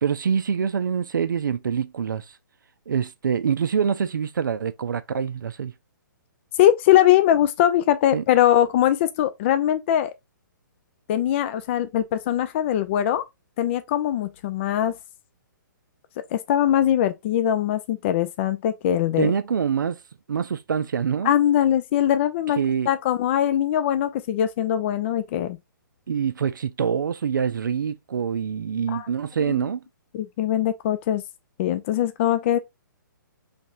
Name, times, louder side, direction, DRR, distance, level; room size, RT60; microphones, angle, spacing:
voice 1, 0.0-2.4 2.9-5.7 8.1-8.2 19.2-20.0 20.3-21.3 22.6-22.9 26.1-29.8, right 7 dB, 70° right, 0.4 m, -25 dB
voice 2, 6.6-10.1 11.1-13.2 13.6-14.9 16.3-19.3 21.2-22.6 22.9-25.6 28.9-29.1 29.5-29.6 30.1-31.2 31.6-32.6, left 11 dB, 35° left, 0.4 m, -21 dB
4.1 x 3.3 x 2.4 m
figure-of-eight pair, 125°, 11 cm